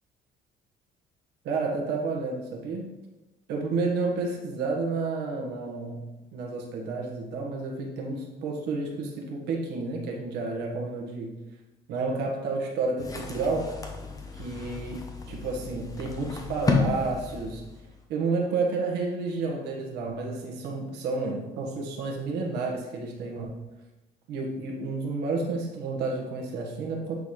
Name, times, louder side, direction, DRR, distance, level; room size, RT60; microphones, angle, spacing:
voice 1, 1.4-2.9 3.5-11.4 11.9-13.7 14.3-17.6 18.1-23.6 24.3-27.2, right 3 dB, 90° right, -1 dB, 1.5 m, -31 dB
sound 1, 13.0-18.0, left 4 dB, 20° left, 0.9 m, -32 dB
9.4 x 4.0 x 3.2 m, 1.0 s
cardioid pair, 110°, 17 cm